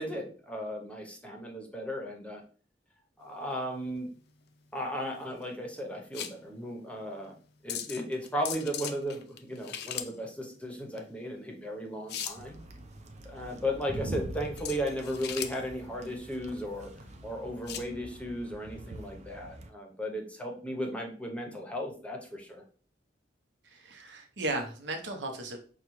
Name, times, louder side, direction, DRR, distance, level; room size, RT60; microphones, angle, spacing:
voice 1, 0.0-2.4 3.2-4.1 4.7-7.3 7.6-12.6 13.2-16.9 17.2-22.6, equal, 5° left, 1 dB, 0.8 m, -35 dB
sound 1, 3.2-17.9, left 9 dB, 60° left, 0.4 m, -42 dB
sound 2, 12.3-19.7, right 1 dB, 40° right, 0.5 m, -44 dB
voice 2, 23.6-25.6, right 2 dB, 85° right, 4 dB, 0.9 m, -35 dB
5.8 x 2.3 x 3.1 m, 0.42 s
head